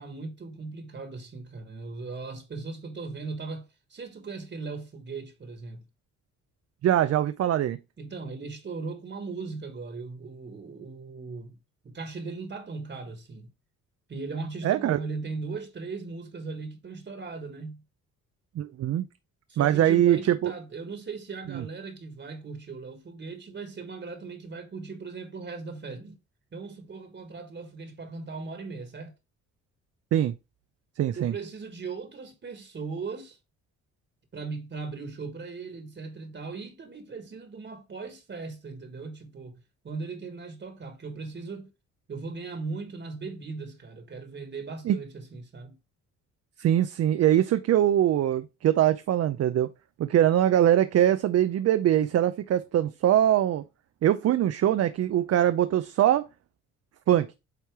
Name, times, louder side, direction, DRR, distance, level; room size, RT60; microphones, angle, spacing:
voice 1, 0.0-5.8 8.0-11.6 11.8-13.5 14.1-17.8 19.5-26.2 26.5-29.1 31.1-33.4 34.3-41.7 42.1-45.8, right 4 dB, 35° right, 1.6 m, -38 dB
voice 2, 6.8-7.8 14.6-15.0 18.6-19.1 19.6-20.5 30.1-30.3 31.0-31.3 44.9-45.0 46.6-49.7 50.0-53.6 54.0-56.2 57.1-57.3, right 11 dB, 55° right, 0.5 m, -22 dB
8.3 x 2.9 x 4.7 m
cardioid pair, 90°, 30 cm